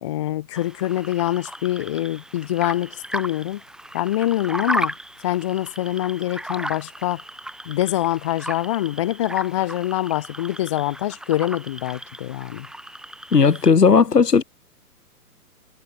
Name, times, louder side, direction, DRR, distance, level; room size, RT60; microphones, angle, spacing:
voice 1, 0.0-3.6 3.9-4.9 5.2-7.2 7.7-12.7, left 14 dB, 20° left, 0.6 m, -25 dB
sound 1, 0.5-13.7, right 1 dB, ahead, 3.8 m, -35 dB
voice 2, 13.3-14.4, left 5 dB, 90° left, 3.7 m, -15 dB
hypercardioid pair, 140°, 46 cm